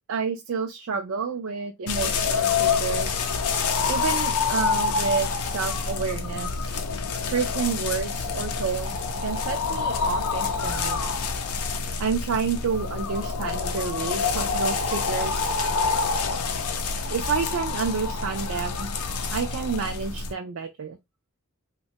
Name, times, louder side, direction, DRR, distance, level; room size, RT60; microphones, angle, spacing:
voice 1, 0.1-3.3 3.9-6.7 7.2-11.0 12.0-15.6 17.1-18.9 19.3-21.0, right 5 dB, 65° right, 0.4 m, -29 dB
sound 1, 1.9-20.3, left 5 dB, 85° left, 0.5 m, -27 dB
3.1 x 2.2 x 2.8 m
head